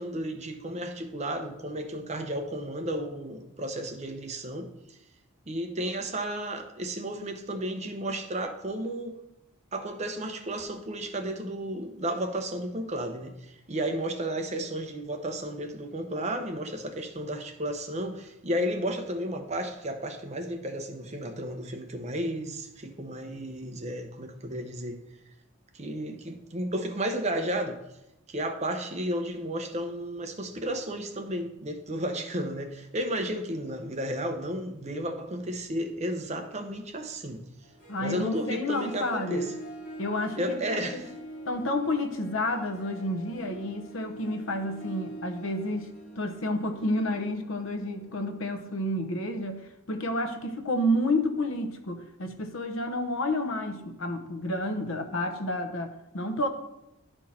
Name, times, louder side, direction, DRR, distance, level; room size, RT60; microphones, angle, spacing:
voice 1, 0.0-5.0 5.5-9.2 9.7-25.0 25.7-27.8 28.3-37.4 38.0-39.4 40.4-41.1, right 1 dB, 30° right, 0.8 m, -33 dB
Harp, 37.6-48.8, right 1 dB, 40° left, 3.5 m, -46 dB
voice 2, 37.9-39.5 40.0-41.0 41.5-56.5, left 1 dB, 65° left, 0.9 m, -30 dB
11.5 x 4.5 x 4.3 m
head